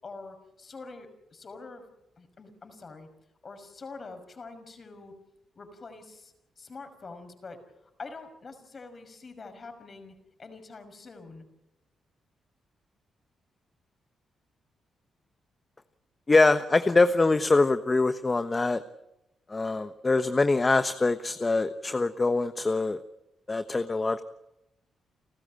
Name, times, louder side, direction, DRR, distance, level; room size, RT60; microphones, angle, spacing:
voice 1, 0.0-1.9 2.2-3.1 3.4-5.1 5.5-7.6 8.0-11.5, left 3 dB, 45° left, 8 dB, 5.9 m, -45 dB
voice 2, 16.3-18.8 19.5-23.0 23.5-24.2, left 3 dB, 30° left, 10 dB, 1.2 m, -24 dB
30.0 x 13.5 x 8.9 m, 0.90 s
cardioid pair, 70°, 0 cm